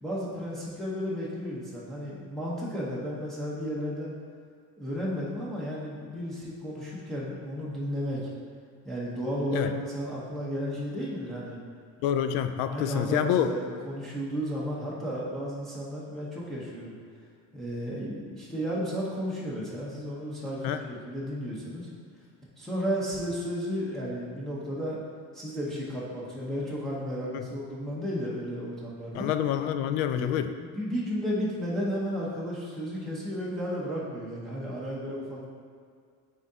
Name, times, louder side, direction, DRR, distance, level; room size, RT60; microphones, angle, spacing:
voice 1, 0.0-4.2 4.8-8.2 8.8-11.6 12.7-16.9 17.5-21.9 22.6-25.0 25.3-29.3 30.1-30.3 30.6-35.5, equal, ahead, -7 dB, 0.9 m, -33 dB
voice 2, 12.0-13.5 20.6-20.8 27.3-27.5 29.1-30.5, left 9 dB, 75° left, 9 dB, 0.5 m, -27 dB
9.1 x 3.7 x 2.7 m, 2.1 s
cardioid pair, 155°, 34 cm